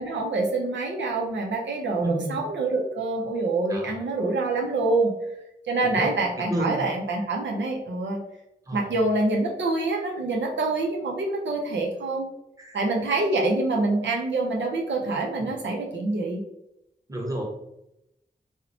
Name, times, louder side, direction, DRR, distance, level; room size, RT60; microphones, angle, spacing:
voice 1, 0.0-5.1 5.7-8.2 8.7-12.3 12.7-16.4, right 2 dB, 90° right, 0 dB, 0.5 m, -26 dB
voice 2, 2.0-2.4 3.7-4.0 5.8-6.1 6.5-6.9 8.6-9.0 12.6-12.8 15.4-15.5 17.1-17.4, right 1 dB, 20° right, -1 dB, 1.0 m, -31 dB
2.8 x 2.1 x 3.9 m, 0.84 s
cardioid pair, 40°, 18 cm